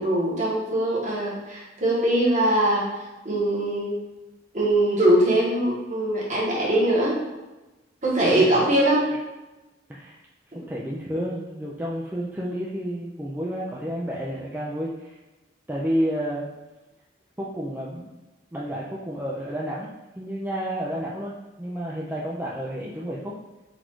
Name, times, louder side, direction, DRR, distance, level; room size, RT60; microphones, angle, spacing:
voice 1, 0.0-2.9 3.2-3.9 4.5-7.2 8.0-9.0 10.5-10.6, right 1 dB, 40° right, -5 dB, 1.2 m, -22 dB
voice 2, 10.5-15.2 15.7-16.5 17.4-18.1 18.5-19.9 20.2-23.4, equal, 10° right, -5 dB, 0.3 m, -30 dB
4.0 x 2.5 x 4.5 m, 1.1 s
head